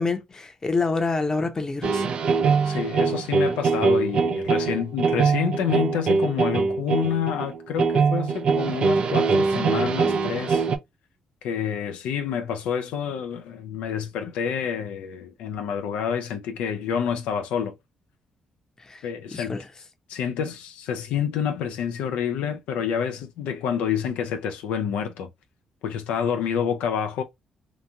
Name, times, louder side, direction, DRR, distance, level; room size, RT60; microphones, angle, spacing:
voice 1, 0.0-2.1 18.8-19.0 19.3-19.6, left 3 dB, 30° left, 0.7 m, -27 dB
sound 1, 1.8-10.8, right 5 dB, 60° right, 0.4 m, -23 dB
voice 2, 2.6-10.6 11.4-17.7 19.0-19.5 20.1-25.3 25.8-27.2, left 8 dB, 90° left, 0.4 m, -28 dB
2.8 x 2.5 x 2.2 m
cardioid pair, 70°, 2 cm